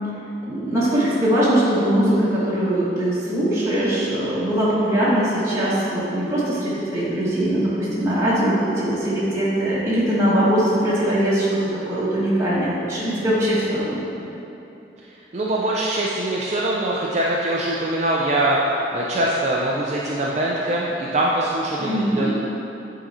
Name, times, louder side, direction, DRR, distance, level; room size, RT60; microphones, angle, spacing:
voice 1, 0.5-11.6 11.9-14.0 21.8-22.3, right 1 dB, 15° right, -10 dB, 1.3 m, -21 dB
voice 2, 15.3-22.3, right 1 dB, 40° right, -5 dB, 0.5 m, -23 dB
8.6 x 3.9 x 4.2 m, 2.9 s
head